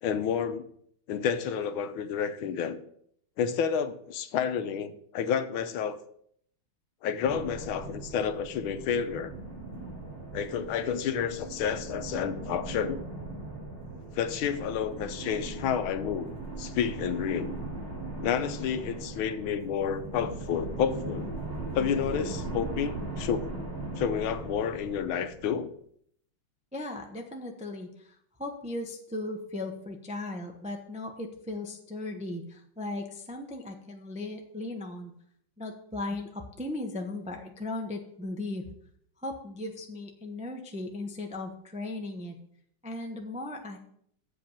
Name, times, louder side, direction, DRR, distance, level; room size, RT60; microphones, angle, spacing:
voice 1, 0.0-0.6 1.1-2.8 3.4-6.0 7.0-9.3 10.3-13.0 14.1-17.6 18.2-21.2 21.7-23.5 24.0-25.7, left 7 dB, 85° left, 11 dB, 1.5 m, -30 dB
sound 1, 7.2-25.7, right 2 dB, 30° right, 4.2 m, -39 dB
voice 2, 26.7-35.1 35.6-38.6 39.2-42.4 42.8-43.8, left 2 dB, 10° right, 3 dB, 0.4 m, -37 dB
7.7 x 5.3 x 7.3 m, 0.66 s
omnidirectional pair, 2.2 m